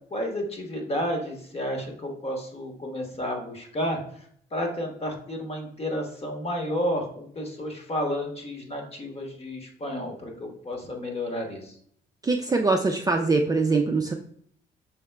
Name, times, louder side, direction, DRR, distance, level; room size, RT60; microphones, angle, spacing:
voice 1, 0.1-11.8, equal, 30° left, 1 dB, 1.3 m, -31 dB
voice 2, 12.2-14.1, right 3 dB, 20° right, 2 dB, 0.4 m, -23 dB
6.2 x 3.5 x 2.2 m, 0.63 s
cardioid pair, 90°, 20 cm